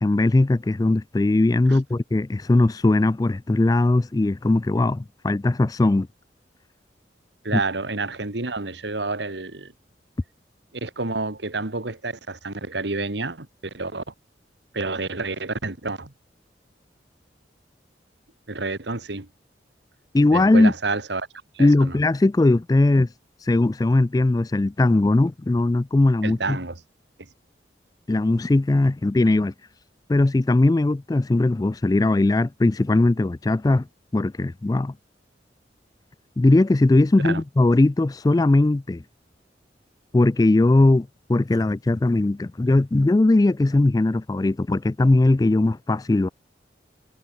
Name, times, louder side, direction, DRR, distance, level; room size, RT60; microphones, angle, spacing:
voice 1, 0.0-6.1 7.5-7.6 20.1-20.7 21.6-23.1 23.4-26.6 28.1-29.5 30.1-33.9 34.1-34.9 36.4-39.0 40.1-46.3, left 2 dB, 20° left, 0.3 m, -19 dB
voice 2, 7.4-9.7 10.7-14.1 14.7-16.1 18.5-19.3 20.3-21.3 21.5-22.0 26.2-26.8 37.3-37.4, right 3 dB, 75° right, 2.0 m, -29 dB
head